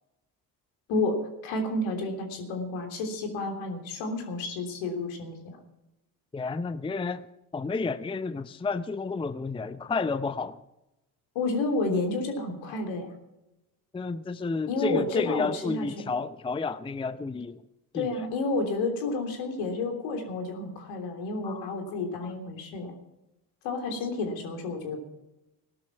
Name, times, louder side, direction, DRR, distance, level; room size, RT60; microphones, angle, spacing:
voice 1, 0.9-5.3 11.3-13.1 14.7-15.9 17.9-22.9 23.6-25.0, left 2 dB, 65° left, 3 dB, 3.4 m, -30 dB
voice 2, 6.3-7.2 7.5-10.6 13.9-17.6 17.9-18.1 21.4-21.7 22.2-22.3, left 4 dB, 10° left, 14 dB, 0.6 m, -31 dB
17.5 x 12.0 x 5.9 m, 0.93 s
figure-of-eight pair, 50°, 49 cm